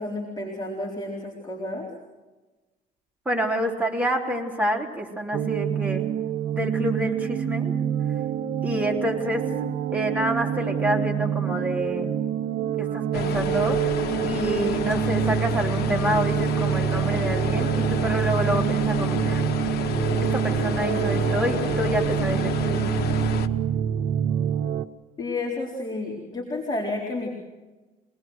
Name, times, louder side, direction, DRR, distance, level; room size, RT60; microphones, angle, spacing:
voice 1, 0.0-1.9 25.2-27.4, left 2 dB, 25° left, -1 dB, 4.1 m, -31 dB
voice 2, 3.3-6.1 6.5-7.8 8.6-9.5 9.9-12.1 12.8-13.9 14.2-19.5 20.3-23.0, right 1 dB, 10° right, -1 dB, 3.7 m, -28 dB
sound 1, 5.3-24.9, right 9 dB, 60° right, 0.8 m, -26 dB
sound 2, 13.1-23.5, left 8 dB, 70° left, 1.2 m, -30 dB
25.5 x 19.5 x 6.4 m, 1.2 s
cardioid pair, 110°, 17 cm